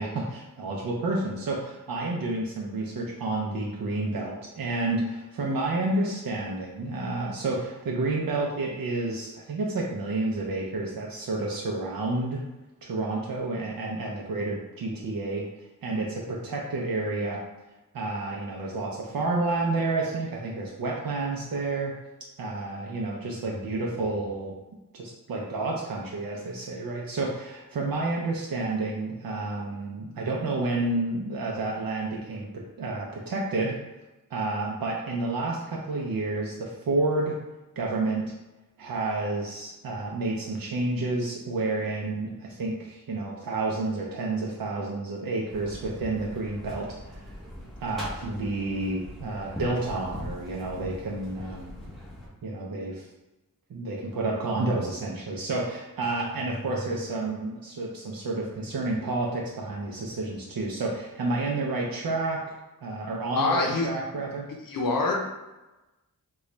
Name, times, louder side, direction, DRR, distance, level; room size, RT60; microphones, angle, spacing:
voice 1, 0.0-12.4 12.8-15.5 15.8-17.4 17.9-21.9 22.4-24.5 24.9-33.8 34.3-37.4 37.8-38.3 38.8-46.9 47.1-47.2 47.8-51.8 52.4-53.0 53.7-62.4 62.8-64.5, right 2 dB, 90° right, -2 dB, 0.6 m, -30 dB
sound 1, 45.5-52.3, equal, ahead, 1.1 m, -41 dB
voice 2, 63.4-64.0 64.7-65.1, left 3 dB, 75° left, -1 dB, 0.6 m, -25 dB
3.8 x 2.3 x 3.1 m, 1.1 s
wide cardioid pair, 95°, 34 cm